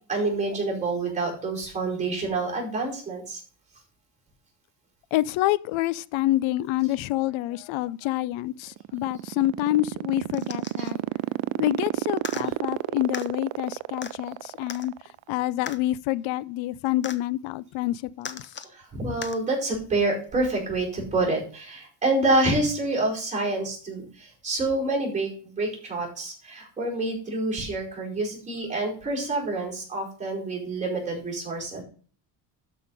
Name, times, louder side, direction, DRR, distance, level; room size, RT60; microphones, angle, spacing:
voice 1, 0.1-3.4 10.8-10.9 18.6-25.3 25.6-31.8, right 2 dB, 15° right, 5.0 m, -27 dB
voice 2, 5.1-11.0 11.6-14.9 15.3-18.5, left 15 dB, 85° left, 0.7 m, -27 dB
sound 1, 8.6-15.2, right 18 dB, 75° right, 0.5 m, -29 dB
sound 2, 10.3-10.9 12.2-12.4 13.1-13.3 14.0-14.1 14.7-14.9 15.7-15.8 17.0-17.2 18.2-18.7 19.2-19.4 20.3-20.4, left 7 dB, 25° left, 0.6 m, -37 dB
12.5 x 5.7 x 4.1 m
cardioid pair, 170°, 46 cm